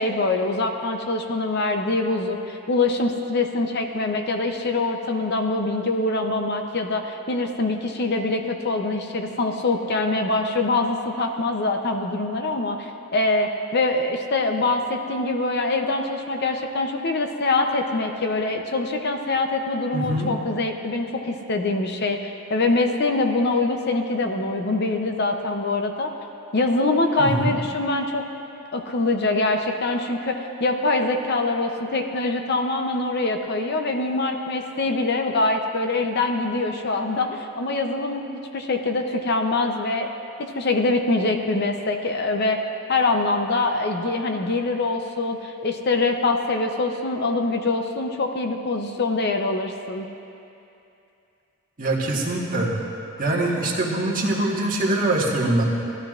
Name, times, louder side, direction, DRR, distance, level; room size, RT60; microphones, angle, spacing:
voice 1, 0.0-26.1 26.5-28.2 28.7-40.1 40.5-42.6 42.9-50.0, left 2 dB, 50° left, 4 dB, 0.6 m, -24 dB
voice 2, 19.9-20.3 27.2-27.5 51.8-52.8 53.2-55.6, right 1 dB, 40° right, -4 dB, 1.5 m, -23 dB
17.0 x 12.5 x 2.5 m, 2.8 s
head